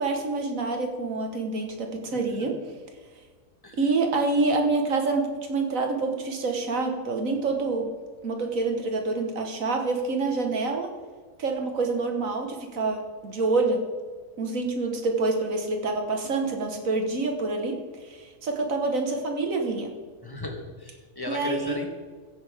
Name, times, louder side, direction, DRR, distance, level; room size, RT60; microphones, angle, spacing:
voice 1, 0.0-2.5 3.8-7.9 8.2-10.9 11.4-13.8 14.4-17.8 18.0-19.9 21.3-21.8, right 3 dB, 75° right, 3 dB, 1.9 m, -27 dB
voice 2, 20.2-21.9, left 1 dB, 15° left, 3 dB, 1.4 m, -35 dB
15.0 x 8.5 x 3.6 m, 1.5 s
omnidirectional pair, 1.4 m